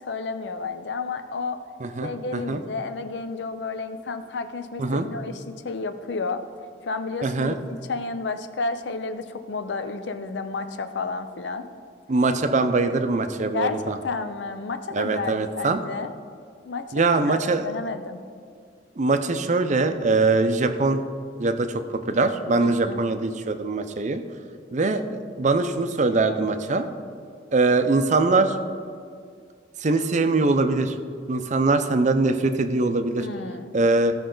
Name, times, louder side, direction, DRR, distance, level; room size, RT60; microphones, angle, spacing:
voice 1, 0.0-1.6 2.0-6.4 6.8-11.7 13.5-16.1 16.6-18.2 22.6-23.0 33.2-33.8, left 4 dB, 75° left, 10 dB, 0.6 m, -31 dB
voice 2, 1.8-2.6 4.8-5.1 7.2-7.6 12.1-14.0 14.9-15.8 16.9-17.7 19.0-21.0 21.4-24.2 24.7-26.9 27.5-28.5 29.8-30.9 31.3-33.3 33.7-34.1, right 3 dB, 40° right, 8 dB, 0.6 m, -22 dB
15.5 x 5.3 x 3.9 m, 2.1 s
head